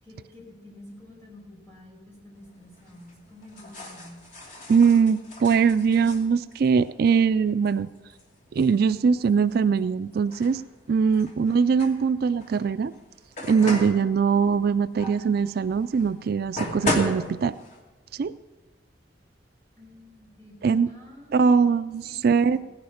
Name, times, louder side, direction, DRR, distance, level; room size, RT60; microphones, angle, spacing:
voice 1, 0.0-4.2 19.8-21.8 22.0-22.6, left 1 dB, 15° left, -3 dB, 5.1 m, -48 dB
sound 1, 2.4-17.8, left 1 dB, 45° left, 2.6 m, -37 dB
voice 2, 4.7-7.9 8.5-10.6 10.9-12.9 13.4-17.5 18.1-18.3 20.6-20.9 21.3-22.6, right 6 dB, 60° right, 13 dB, 0.3 m, -21 dB
17.0 x 10.5 x 5.7 m, 1.2 s
head